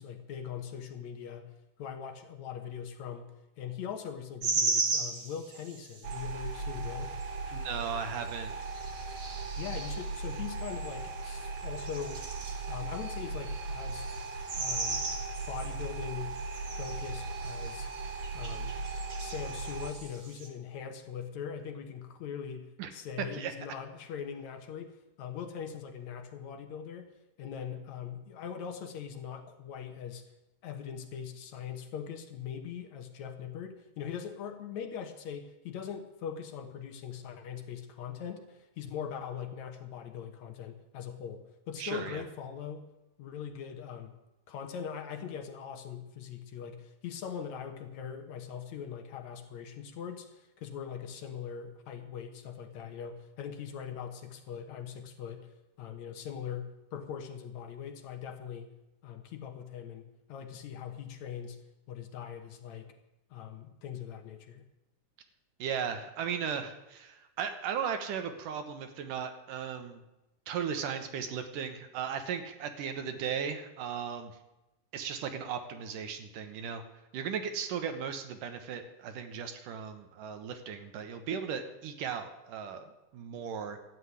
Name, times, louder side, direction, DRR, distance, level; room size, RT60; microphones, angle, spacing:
voice 1, 0.0-1.5 1.8-7.1 9.6-12.2 12.7-14.1 14.6-15.1 15.5-16.4 16.8-17.9 18.3-18.8 19.2-27.1 27.4-30.2 30.6-42.9 43.2-44.2 44.5-55.5 55.8-58.7 59.0-61.6 61.9-62.9 63.3-64.6, left 8 dB, 65° left, 5 dB, 2.3 m, -41 dB
sound 1, 4.4-6.2 6.8-7.3 7.8-7.9 8.2-11.3 11.6-20.5, right 3 dB, 40° right, 1.8 m, -37 dB
sound 2, 6.0-19.9, right 3 dB, 60° right, 1.9 m, -38 dB
voice 2, 7.5-8.5 22.8-22.9 23.3-23.5 41.8-42.2 65.6-70.0 70.5-74.3 74.9-76.8 77.1-83.8, right 7 dB, 80° right, 7 dB, 2.9 m, -36 dB
12.5 x 8.4 x 9.6 m, 0.97 s
omnidirectional pair, 3.7 m